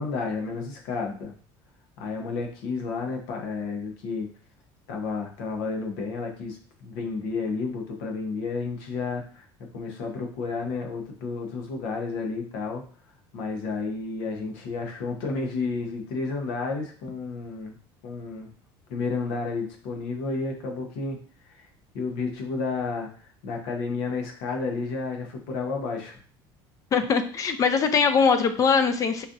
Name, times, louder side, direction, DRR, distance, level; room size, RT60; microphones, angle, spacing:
voice 1, 0.0-1.3 2.0-4.3 4.9-9.5 9.7-12.8 13.3-17.8 18.0-18.5 18.9-21.2 21.4-21.7 21.9-23.1 23.4-26.2, left 4 dB, 85° left, 2 dB, 0.9 m, -31 dB
voice 2, 26.9-29.2, left 6 dB, 30° left, 9 dB, 0.4 m, -21 dB
4.1 x 2.5 x 2.5 m, 0.44 s
cardioid pair, 140°, 11 cm